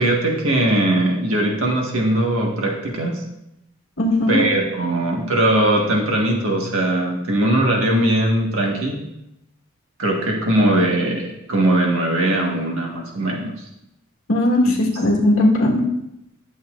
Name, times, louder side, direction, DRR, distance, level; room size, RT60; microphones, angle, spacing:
voice 1, 0.0-3.2 4.3-8.9 10.0-13.5 14.6-14.7, right 1 dB, 90° right, -1 dB, 1.5 m, -20 dB
voice 2, 4.0-4.4 14.3-15.8, left 1 dB, 80° left, -2 dB, 1.4 m, -17 dB
12.0 x 7.2 x 2.5 m, 0.86 s
head